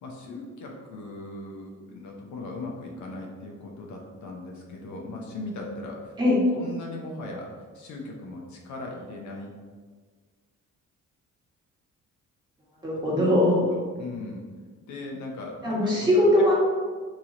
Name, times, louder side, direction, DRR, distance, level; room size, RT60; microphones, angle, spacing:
voice 1, 0.0-6.2 6.5-9.5 13.3-13.4 13.7-14.4 14.8-16.1, left 2 dB, 70° left, 0 dB, 0.7 m, -38 dB
voice 2, 12.8-13.6 15.6-16.5, left 1 dB, 15° right, -6 dB, 1.4 m, -21 dB
3.1 x 2.8 x 3.7 m, 1.5 s
cardioid pair, 90°, 30 cm